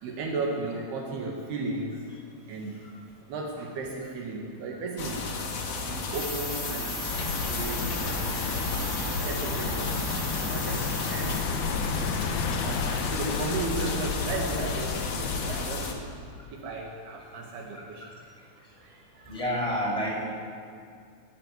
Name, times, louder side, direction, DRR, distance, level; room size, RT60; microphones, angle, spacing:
voice 1, 0.0-2.1 2.4-2.8 3.3-5.3 5.7-7.1 7.3-10.1 10.4-11.4 11.7-12.1 12.6-16.0 16.5-18.1 18.8-19.4, right 3 dB, 80° right, -1 dB, 4.0 m, -35 dB
sound 1, 5.0-15.9, left 4 dB, 50° left, 2.8 m, -33 dB
sound 2, 6.1-11.4, right 2 dB, 40° right, 2.7 m, -38 dB
sound 3, 7.1-15.7, left 5 dB, 75° left, 3.2 m, -32 dB
voice 2, 19.3-20.2, equal, 10° left, -4 dB, 6.5 m, -29 dB
22.5 x 14.5 x 9.5 m, 2.3 s
omnidirectional pair, 4.5 m